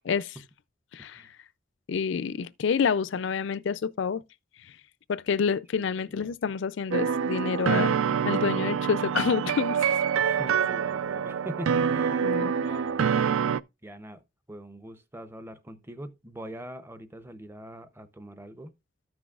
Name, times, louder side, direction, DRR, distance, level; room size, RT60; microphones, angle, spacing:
voice 1, 0.1-0.4 0.9-1.2 1.9-4.2 5.1-8.0 8.2-10.0 12.2-12.5, left 6 dB, 60° left, 0.4 m, -28 dB
voice 2, 5.7-6.4 10.2-12.3 12.6-13.1 13.8-14.2 14.5-18.7, equal, 10° right, 0.6 m, -43 dB
sound 1, 6.9-13.6, right 7 dB, 75° right, 0.4 m, -26 dB
14.0 x 6.1 x 2.3 m
head